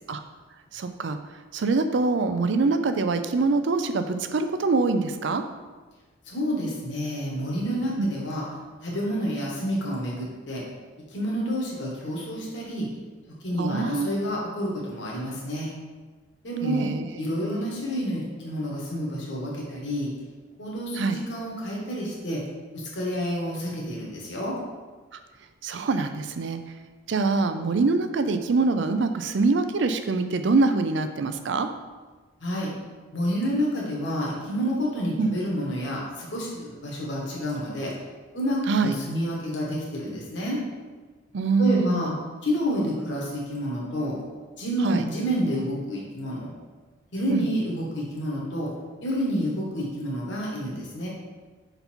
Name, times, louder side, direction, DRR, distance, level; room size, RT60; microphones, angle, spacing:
voice 1, 0.7-1.2 1.5-5.4 8.0-8.1 13.6-14.1 16.6-17.1 17.4-17.6 21.0-21.2 25.6-26.6 27.1-31.7 35.2-35.3 38.7-38.9 41.3-42.2 44.8-45.0 47.3-47.5, right 3 dB, 60° right, 9 dB, 0.4 m, -24 dB
voice 2, 6.3-8.4 8.8-10.6 11.1-12.9 13.4-15.7 16.4-16.8 17.2-20.1 20.6-22.4 22.9-24.5 32.4-32.7 33.1-37.9 38.3-40.6 41.6-42.1 42.4-44.1 44.6-46.5 47.1-48.7 49.0-51.1, equal, 60° left, -4 dB, 1.4 m, -29 dB
5.6 x 4.0 x 4.4 m, 1.3 s
head